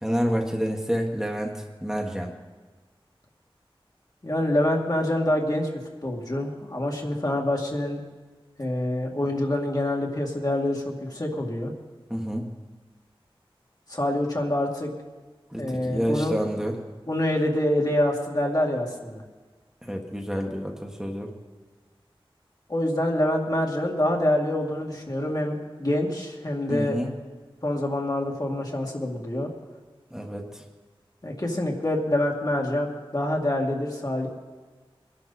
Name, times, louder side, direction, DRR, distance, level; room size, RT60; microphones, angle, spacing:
voice 1, 0.0-1.5 1.8-2.3 12.1-12.5 15.5-16.8 19.8-21.3 26.7-27.1 30.1-30.6, equal, 5° right, 0 dB, 1.5 m, -28 dB
voice 2, 4.2-5.7 6.0-8.0 8.6-11.7 13.9-14.9 15.6-16.3 17.1-19.2 22.7-27.0 27.6-29.5 31.2-34.3, left 1 dB, 45° left, -1 dB, 2.2 m, -26 dB
23.0 x 11.5 x 4.2 m, 1.3 s
wide cardioid pair, 55°, 9 cm